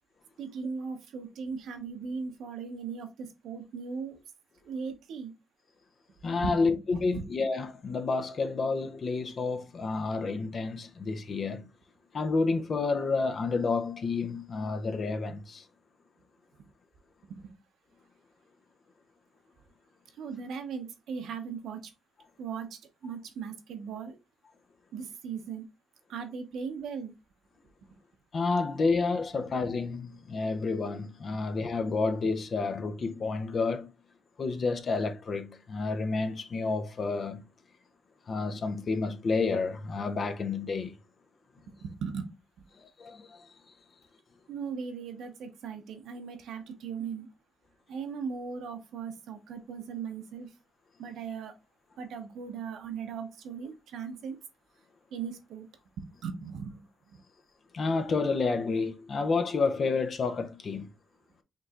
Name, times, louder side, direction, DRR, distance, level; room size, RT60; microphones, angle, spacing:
voice 1, 0.4-4.2 4.6-5.3 6.4-7.3 17.2-17.5 20.2-21.9 22.4-24.2 24.9-25.7 26.1-27.1 27.8-28.0 31.3-31.4 41.8-42.3 42.6-42.7 44.5-47.3 47.9-50.5 51.0-51.5 52.0-54.4 55.1-55.7 56.0-56.8 57.1-57.2, right 6 dB, 80° right, 0.9 m, -38 dB
voice 2, 6.2-11.6 12.1-15.6 28.3-33.9 34.4-37.4 38.3-40.9 43.0-43.4 57.7-60.9, left 4 dB, 50° left, 0.7 m, -30 dB
5.4 x 3.1 x 2.4 m
cardioid pair, 90°, 0 cm